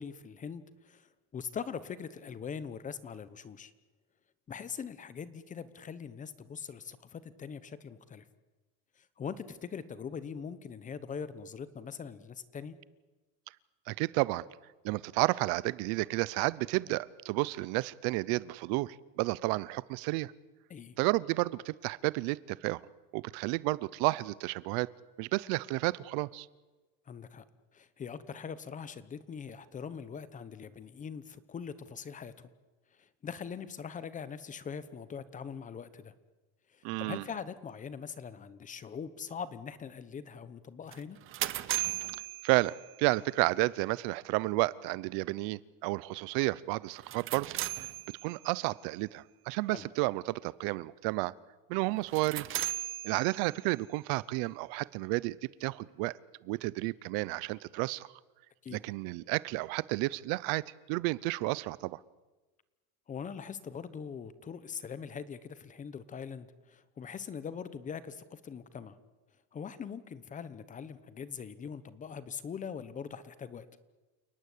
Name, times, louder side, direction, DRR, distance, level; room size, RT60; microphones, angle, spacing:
voice 1, 0.0-3.7 4.5-8.2 9.0-12.8 20.7-21.0 27.1-27.4 27.7-32.5 33.0-36.1 36.7-41.2 49.7-49.9 58.6-58.8 63.1-69.0 69.5-73.7, left 6 dB, 20° left, 15 dB, 1.0 m, -42 dB
voice 2, 13.9-14.4 14.8-20.3 21.0-22.8 23.1-24.9 25.2-26.5 36.8-37.2 42.4-42.7 43.0-47.5 47.8-47.9 48.2-51.3 51.7-52.5 53.0-55.4 55.6-56.1 56.4-58.1 58.7-62.0, right 22 dB, 70° right, 21 dB, 0.8 m, -31 dB
sound 1, 40.9-43.2 46.9-48.6 52.0-53.8, right 15 dB, 35° right, 0.9 m, -37 dB
29.5 x 19.0 x 8.5 m, 1.2 s
cardioid pair, 175°, 38 cm